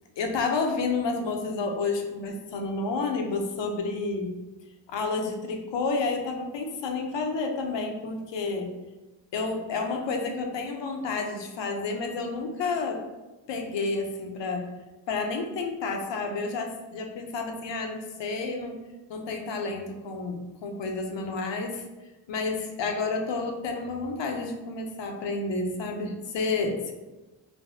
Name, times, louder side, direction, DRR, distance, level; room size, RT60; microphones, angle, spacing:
voice 1, 0.2-4.3 4.9-8.7 9.3-13.0 13.5-14.7 15.1-18.8 19.1-21.8 22.3-26.9, left 3 dB, 65° left, 3 dB, 0.6 m, -30 dB
3.3 x 2.1 x 2.6 m, 1.1 s
cardioid pair, 105°, 47 cm